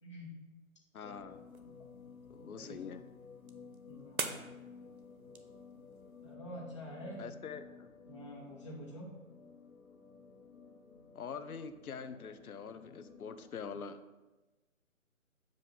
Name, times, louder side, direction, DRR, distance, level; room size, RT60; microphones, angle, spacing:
voice 1, 0.0-0.4 2.5-2.8 3.8-4.4 6.2-7.3 8.1-9.1, equal, 20° left, -4 dB, 1.0 m, -47 dB
voice 2, 0.9-1.4 2.3-3.0 7.2-7.9 11.1-14.0, left 6 dB, 90° left, 10 dB, 0.6 m, -44 dB
sound 1, 1.0-13.5, left 5 dB, 75° left, 1.1 m, -54 dB
sound 2, 1.3-6.4, right 4 dB, 75° right, 0.8 m, -46 dB
7.7 x 2.6 x 5.4 m, 1.1 s
figure-of-eight pair, 160°, 42 cm